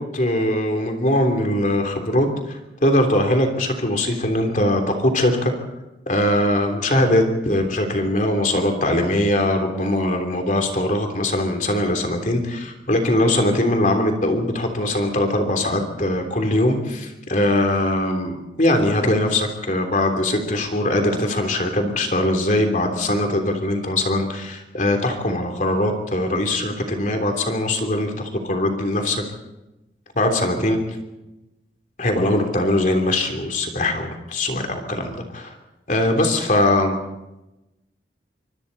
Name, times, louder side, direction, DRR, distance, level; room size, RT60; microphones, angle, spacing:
voice 1, 0.0-5.5 6.1-29.2 30.1-30.8 32.0-35.5 35.9-37.0, left 1 dB, 45° left, 4 dB, 3.2 m, -21 dB
26.0 x 24.5 x 4.2 m, 0.96 s
head